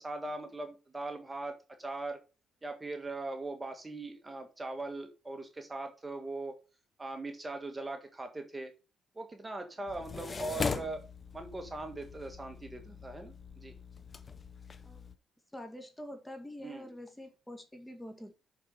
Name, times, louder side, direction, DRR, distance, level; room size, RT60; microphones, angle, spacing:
voice 1, 0.0-2.2 2.6-6.6 7.0-8.7 9.1-11.0 11.3-13.7 16.6-16.9, right 2 dB, 20° right, 1.7 m, -40 dB
sound 1, 9.9-15.2, left 5 dB, 35° left, 0.9 m, -40 dB
voice 2, 15.5-18.3, left 1 dB, 10° left, 2.2 m, -46 dB
6.9 x 6.5 x 5.4 m
cardioid pair, 90°, 0 cm